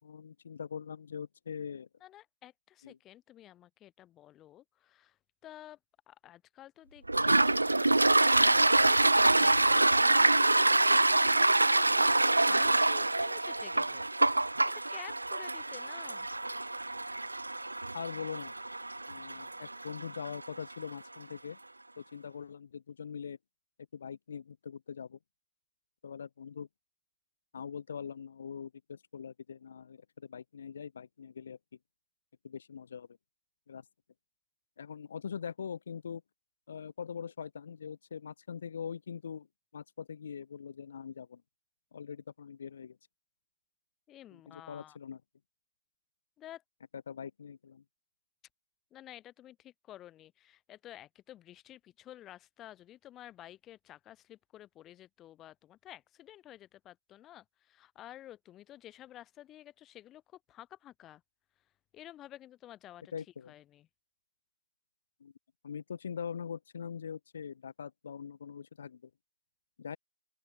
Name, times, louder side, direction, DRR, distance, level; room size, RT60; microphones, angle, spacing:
voice 1, 0.0-1.9 2.8-3.0 17.9-18.5 19.1-21.6 22.0-23.4 23.9-25.2 26.0-26.7 27.5-31.6 32.4-33.1 33.7-33.8 34.8-36.2 36.7-39.5 39.7-41.4 41.9-43.0 44.3-45.2 46.9-47.8 63.1-63.5 65.2-65.3 65.6-69.1 69.8-70.0, left 7 dB, 35° left, 3.9 m, -42 dB
voice 2, 2.0-5.8 6.1-14.1 14.6-16.3 44.1-45.0 46.4-46.6 48.9-61.2 61.6-63.1 63.5-63.9, left 13 dB, 10° left, 3.7 m, -52 dB
Toilet flush, 7.1-20.5, right 2 dB, 70° right, 0.4 m, -26 dB
open air
figure-of-eight pair, 160°, 0 cm